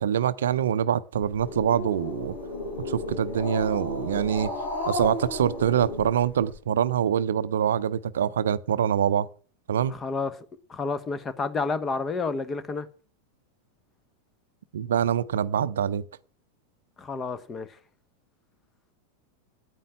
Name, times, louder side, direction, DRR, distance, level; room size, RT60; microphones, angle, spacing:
voice 1, 0.0-2.3 2.9-4.5 4.9-9.3 9.7-10.0 14.7-16.0, right 9 dB, 65° right, 0.7 m, -25 dB
Growling, 1.2-6.6, left 2 dB, 75° left, 7.9 m, -34 dB
voice 2, 9.9-10.3 10.7-12.9 17.0-17.8, left 4 dB, 20° left, 1.3 m, -30 dB
9.7 x 9.3 x 9.7 m
figure-of-eight pair, 90°, 0 cm